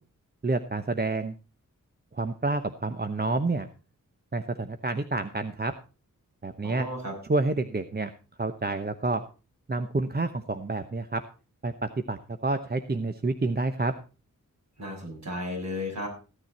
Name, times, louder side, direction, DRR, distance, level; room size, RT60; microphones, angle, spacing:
voice 1, 0.4-1.3 2.1-3.7 4.3-5.7 6.4-6.9 7.3-8.1 8.4-9.2 9.7-11.2 11.6-13.9, right 3 dB, 30° right, 9 dB, 0.9 m, -28 dB
voice 2, 6.6-7.1 14.8-16.1, left 1 dB, 55° right, 1 dB, 6.6 m, -34 dB
15.0 x 9.4 x 4.2 m, 0.33 s
wide cardioid pair, 70°, 33 cm